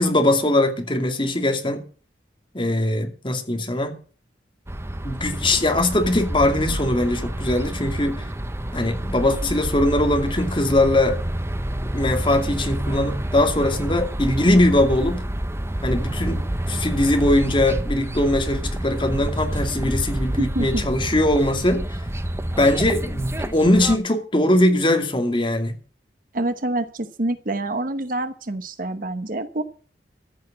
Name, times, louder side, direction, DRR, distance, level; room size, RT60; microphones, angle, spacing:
voice 1, 0.0-1.8 2.5-4.0 5.0-8.2 8.7-11.2 11.9-15.2 15.8-21.9 22.6-25.7, left 1 dB, 30° left, 2.5 m, -21 dB
sound 1, 4.7-24.0, right 1 dB, 15° right, 0.9 m, -28 dB
voice 2, 20.4-20.8 26.3-29.6, right 1 dB, 50° right, 1.0 m, -26 dB
14.0 x 6.6 x 8.6 m
head